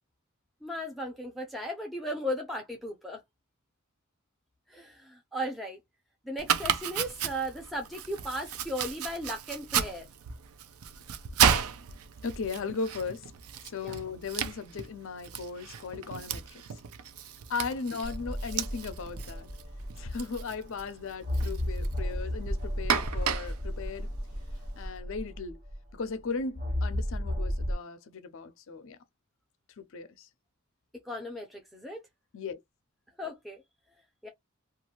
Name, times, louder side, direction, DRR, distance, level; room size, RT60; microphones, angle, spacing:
voice 1, 0.6-3.2 4.7-5.8 6.2-10.0 13.8-13.9 31.1-32.0 33.2-33.6 34.2-34.3, equal, ahead, 0.6 m, -36 dB
Domestic sounds home sounds, 6.4-24.8, right 8 dB, 80° right, 0.5 m, -34 dB
voice 2, 12.2-13.3 13.6-16.6 17.5-19.5 20.0-24.1 24.8-25.6 25.9-29.0 29.8-30.3 32.3-32.6, left 5 dB, 60° left, 0.5 m, -37 dB
sound 1, 18.0-20.6 21.2-25.9 26.6-27.8, equal, 45° right, 1.3 m, -33 dB
2.6 x 2.4 x 2.9 m
head